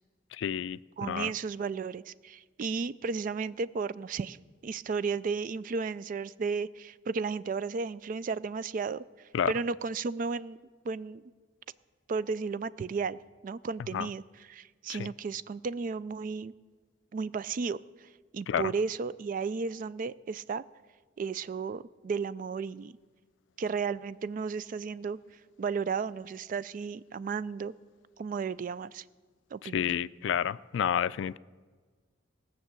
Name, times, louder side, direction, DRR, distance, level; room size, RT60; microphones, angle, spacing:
voice 1, 0.4-1.3 9.3-9.5 13.9-14.1 14.9-15.1 18.5-18.6 29.7-31.4, left 8 dB, 80° left, 18 dB, 0.3 m, -30 dB
voice 2, 1.0-4.4 4.6-10.6 10.8-11.2 12.1-16.5 17.1-20.6 21.2-22.9 23.6-25.2 25.6-27.7 28.2-29.0 29.5-29.9, right 5 dB, 45° right, 17 dB, 0.3 m, -34 dB
18.0 x 6.4 x 8.1 m, 1.5 s
head